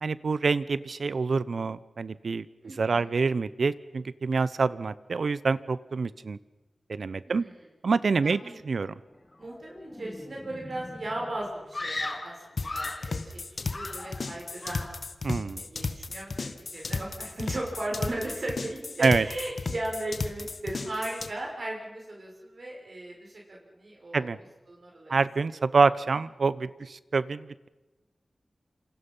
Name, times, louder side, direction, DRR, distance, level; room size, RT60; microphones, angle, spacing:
voice 1, 0.0-2.5 2.8-6.4 6.9-7.4 7.8-8.9 15.2-15.6 19.0-19.2 24.1-24.4 25.1-27.7, right 4 dB, 75° right, 17 dB, 0.8 m, -26 dB
voice 2, 2.6-3.1 7.2-7.6 8.2-8.6 9.4-14.9 15.5-24.3 24.7-25.2 25.5-25.6, right 1 dB, 60° right, -2 dB, 6.3 m, -37 dB
sound 1, 8.9-12.1 12.4-12.8, left 1 dB, 25° left, 2.2 m, -47 dB
Screaming, 11.7-13.2 13.7-14.3 14.6-15.0, left 2 dB, 45° left, 2.3 m, -36 dB
sound 2, 12.6-21.3, left 4 dB, 70° left, 1.5 m, -34 dB
28.0 x 26.0 x 5.7 m, 1.1 s
wide cardioid pair, 65°, 0 cm